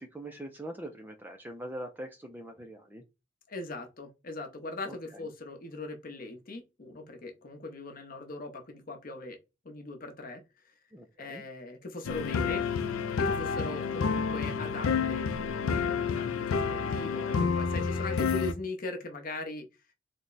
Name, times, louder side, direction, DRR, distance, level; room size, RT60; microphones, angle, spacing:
voice 1, 0.0-3.0 4.8-5.3 10.9-11.4, right 1 dB, 10° right, 0.3 m, -43 dB
voice 2, 3.5-9.4 9.6-10.4 11.2-12.6 13.2-19.7, left 2 dB, 45° left, 0.7 m, -40 dB
sound 1, 12.0-18.5, left 5 dB, 80° left, 0.4 m, -29 dB
3.4 x 2.1 x 3.8 m
head